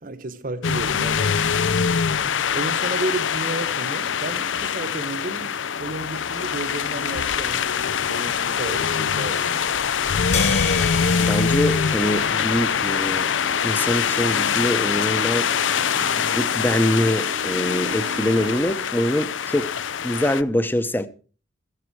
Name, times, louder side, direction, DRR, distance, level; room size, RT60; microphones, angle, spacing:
voice 1, 0.0-1.6 2.5-9.7, right 2 dB, 50° right, 1.1 m, -32 dB
sound 1, 0.6-20.4, left 7 dB, 85° left, 0.6 m, -24 dB
sound 2, 10.1-18.6, right 2 dB, 90° right, 1.6 m, -39 dB
sound 3, 10.3-14.7, left 6 dB, 35° left, 1.5 m, -32 dB
voice 2, 11.2-13.3 13.6-15.5 16.0-19.7 20.0-21.1, left 1 dB, 10° left, 0.8 m, -24 dB
13.5 x 11.5 x 4.7 m
head